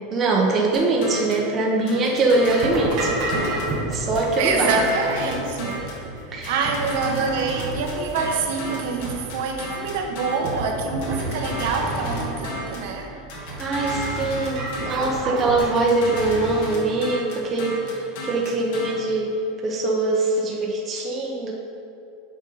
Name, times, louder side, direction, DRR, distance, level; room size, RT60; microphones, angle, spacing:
voice 1, 0.1-3.2 3.9-4.7 6.3-6.7 13.1-13.2 13.6-19.3 19.6-21.5, right 2 dB, 25° right, -1 dB, 0.8 m, -23 dB
sound 1, 0.7-1.5 1.9-3.8 4.1-6.0 6.4-10.6 11.0-12.9 13.3-15.2 15.6-18.9, left 1 dB, 65° left, 1.7 m, -33 dB
sound 2, 2.5-15.6, right 2 dB, 40° right, 1.5 m, -32 dB
voice 2, 4.4-5.9 6.2-13.1, right 4 dB, 60° right, 2 dB, 0.9 m, -26 dB
6.4 x 5.3 x 5.4 m, 2.6 s
supercardioid pair, 165°, 0 cm